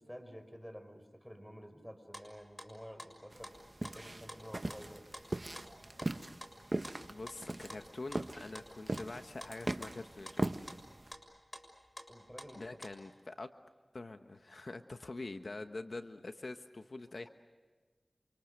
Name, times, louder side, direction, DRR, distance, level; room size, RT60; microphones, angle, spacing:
voice 1, 0.0-3.5 3.9-5.0 12.1-12.6, equal, 5° left, 8 dB, 5.5 m, -50 dB
sound 1, 2.1-6.1 6.4-12.9, left 1 dB, 25° left, 6.9 m, -50 dB
sound 2, 3.3-11.1, right 2 dB, 40° right, 1.3 m, -40 dB
voice 2, 7.1-10.7 12.6-13.5 13.9-17.3, left 2 dB, 70° left, 7 dB, 1.2 m, -45 dB
29.5 x 27.5 x 6.7 m, 1.3 s
wide cardioid pair, 40°, 0 cm